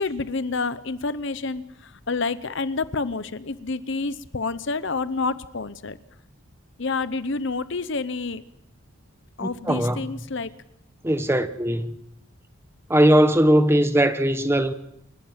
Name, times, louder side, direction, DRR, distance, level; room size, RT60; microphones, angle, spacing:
voice 1, 0.0-6.0 6.8-8.4 9.4-10.5, left 3 dB, 60° left, 0.8 m, -28 dB
voice 2, 9.4-10.1 11.0-11.9 12.9-14.7, right 1 dB, 10° right, 0.9 m, -19 dB
28.5 x 13.0 x 7.4 m
head